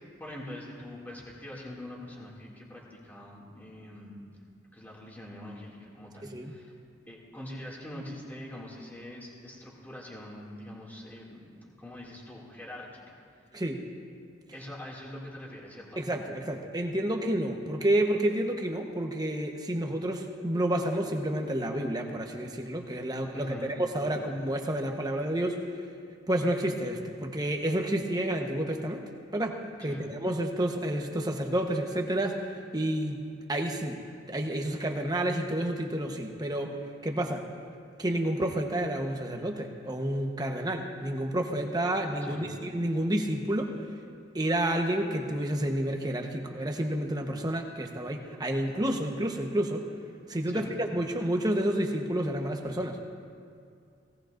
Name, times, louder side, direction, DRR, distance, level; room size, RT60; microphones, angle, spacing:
voice 1, 0.2-4.2 4.7-6.7 7.1-13.2 14.5-16.0 23.3-23.7 24.0-24.4 29.9-30.1 42.3-42.5 50.5-50.8, left 1 dB, 10° left, -4 dB, 2.3 m, -43 dB
voice 2, 16.0-23.5 23.9-25.6 26.3-29.0 29.3-34.0 34.3-36.7 37.0-37.5 38.0-43.7 44.3-49.8 50.3-53.0, right 1 dB, 20° right, 2 dB, 1.0 m, -30 dB
18.5 x 18.0 x 2.6 m, 2.4 s
head